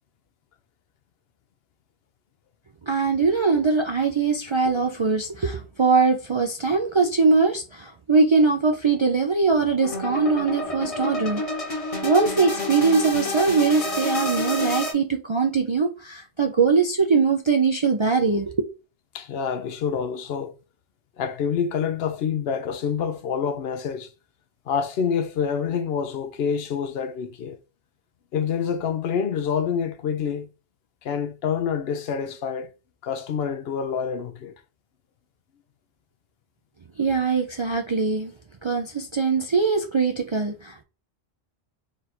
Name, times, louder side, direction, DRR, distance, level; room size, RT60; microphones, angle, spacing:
voice 1, 2.9-11.4 11.7-11.8 12.0-18.6 37.0-38.3 38.6-40.8, right 4 dB, 45° right, 0.4 m, -22 dB
sound 1, 9.8-14.9, left 2 dB, 35° left, 1.1 m, -29 dB
voice 2, 19.1-20.5 21.2-24.1 24.7-27.6 28.3-30.5 31.0-32.7 33.0-34.5, left 7 dB, 70° left, 0.8 m, -27 dB
3.8 x 2.5 x 4.2 m
omnidirectional pair, 1.1 m